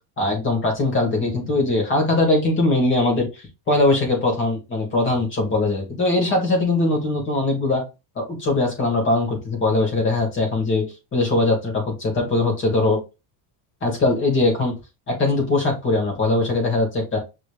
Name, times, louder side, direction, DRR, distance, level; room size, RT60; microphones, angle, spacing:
voice 1, 0.2-7.8 8.2-10.9 11.1-13.0 13.8-14.7 15.1-17.2, left 2 dB, 25° left, 0 dB, 2.2 m, -21 dB
5.8 x 3.5 x 2.4 m, 0.26 s
cardioid pair, 165°, 48 cm